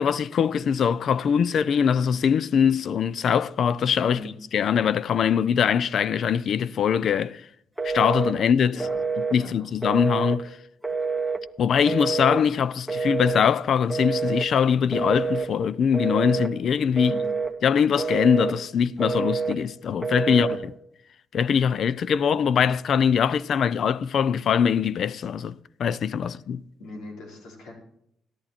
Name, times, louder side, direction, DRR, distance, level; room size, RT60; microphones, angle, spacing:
voice 1, 0.0-4.2 4.5-7.5 7.8-8.8 9.3-10.5 11.6-17.1 17.6-20.5 21.3-26.6, left 7 dB, 60° left, 0.5 m, -22 dB
Telephone, 7.8-8.4 8.8-9.4 9.8-10.4 10.8-11.4 11.9-12.4 12.9-13.5 13.9-14.5 14.9-15.5 15.9-16.5 17.0-17.5 18.0-18.6 19.0-19.6 20.0-20.6, right 4 dB, ahead, 1.7 m, -27 dB
voice 2, 8.7-9.0 9.4-9.7 17.0-17.3 20.3-20.6 26.2-26.4 26.8-27.7, left 2 dB, 85° left, 5.0 m, -40 dB
13.5 x 11.0 x 4.3 m
cardioid pair, 90°, 0 cm